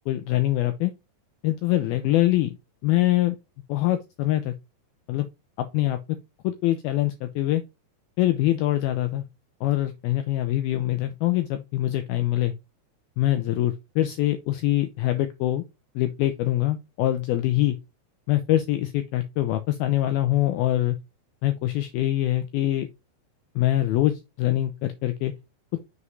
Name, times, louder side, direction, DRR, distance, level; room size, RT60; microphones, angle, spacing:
voice 1, 0.1-0.9 1.4-2.6 2.8-3.4 3.7-4.5 5.1-5.3 5.6-6.0 6.4-7.6 8.2-9.2 9.6-12.5 13.2-15.6 16.0-17.8 18.3-21.0 21.4-22.9 23.6-25.3, left 14 dB, 85° left, 2.1 m, -24 dB
6.9 x 4.9 x 3.1 m
omnidirectional pair, 5.1 m